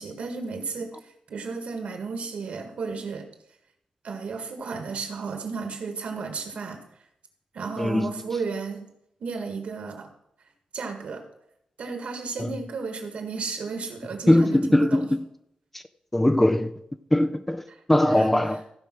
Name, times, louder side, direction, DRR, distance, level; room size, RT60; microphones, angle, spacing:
voice 1, 0.0-3.3 4.0-6.8 7.5-8.9 9.2-10.1 10.7-11.2 11.8-15.1 18.0-18.4, right 4 dB, 65° right, 1.7 m, -33 dB
voice 2, 7.8-8.3 12.4-12.5 14.3-15.2 15.7-15.8 16.1-16.7 17.1-17.6 17.9-18.6, left 1 dB, 10° left, 0.4 m, -21 dB
15.5 x 5.1 x 6.0 m
wide cardioid pair, 175°, 2 cm